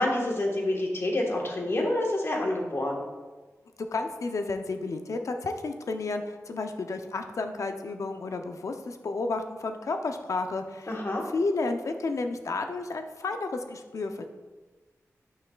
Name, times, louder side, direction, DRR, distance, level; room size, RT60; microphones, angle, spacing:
voice 1, 0.0-3.0 10.9-11.2, left 1 dB, 50° left, 0 dB, 1.4 m, -27 dB
voice 2, 3.8-11.0 11.3-14.2, left 3 dB, 70° left, 6 dB, 0.6 m, -31 dB
9.6 x 5.7 x 2.3 m, 1.3 s
wide cardioid pair, 70°, 6 cm